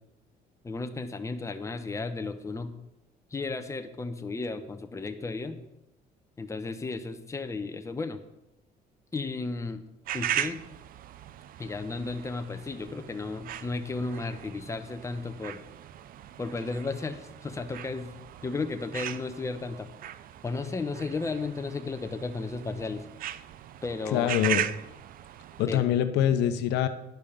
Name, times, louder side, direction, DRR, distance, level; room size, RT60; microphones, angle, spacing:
voice 1, 0.6-2.7 3.3-5.7 6.4-8.2 9.1-9.8 10.1-10.6 11.6-15.6 16.4-18.1 18.4-19.9 20.4-23.0 23.8-24.3 25.7-25.8, left 3 dB, 15° left, 7 dB, 0.9 m, -34 dB
sound 1, 10.1-25.7, right 11 dB, 60° right, 0.5 m, -38 dB
voice 2, 24.1-24.6 25.6-26.9, left 10 dB, 85° left, 10 dB, 0.8 m, -24 dB
10.5 x 5.4 x 6.6 m, 0.90 s
cardioid pair, 110°, 17 cm